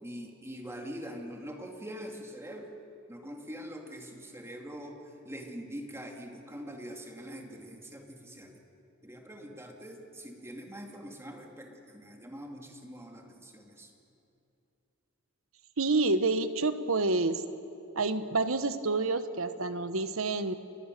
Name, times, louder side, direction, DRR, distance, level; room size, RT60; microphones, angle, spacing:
voice 1, 0.0-2.7 3.1-8.6 9.0-13.9, equal, 15° right, 2 dB, 2.5 m, -44 dB
voice 2, 15.8-17.4 17.9-20.5, right 3 dB, 70° right, 11 dB, 1.2 m, -28 dB
29.5 x 21.5 x 6.8 m, 2.8 s
head